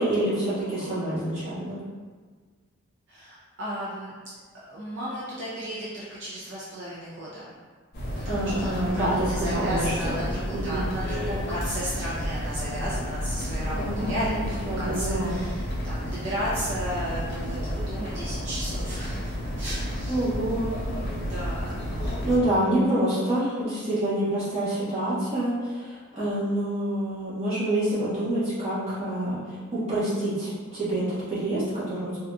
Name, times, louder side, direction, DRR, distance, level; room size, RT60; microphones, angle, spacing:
voice 1, 0.0-1.8 8.2-10.2 10.5-10.9 13.7-15.4 20.1-20.7 22.2-32.2, right 1 dB, 30° right, -12 dB, 1.3 m, -27 dB
voice 2, 3.1-4.1 4.5-7.4 8.2-20.3 21.3-21.9, equal, 60° right, -9 dB, 0.6 m, -34 dB
sound 1, 7.9-22.4, equal, 50° left, 0.6 m, -31 dB
3.8 x 2.6 x 2.3 m, 1.5 s
head